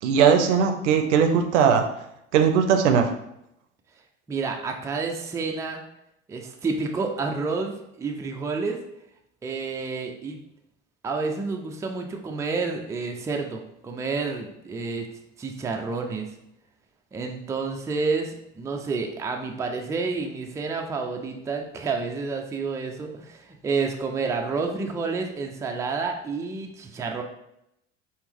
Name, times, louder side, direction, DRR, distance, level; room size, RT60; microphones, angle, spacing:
voice 1, 0.0-1.9 2.3-3.1, right 7 dB, 75° right, 6 dB, 0.6 m, -19 dB
voice 2, 4.3-5.8 6.3-8.8 9.4-10.4 11.0-15.1 15.4-16.3 17.1-27.2, right 4 dB, 10° right, 2 dB, 0.4 m, -29 dB
4.2 x 2.0 x 3.4 m, 0.81 s
hypercardioid pair, 70°, 37 cm